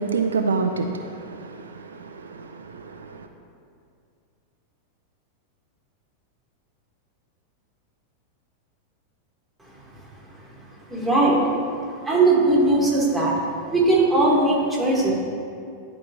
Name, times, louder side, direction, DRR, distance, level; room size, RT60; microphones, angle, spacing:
voice 1, 0.0-3.3, right 4 dB, 70° right, 0.4 m, -28 dB
voice 2, 10.9-11.6 12.0-13.4 13.7-15.1, right 2 dB, 5° right, 1.7 m, -19 dB
10.5 x 4.8 x 3.0 m
figure-of-eight pair, 90°, 0 cm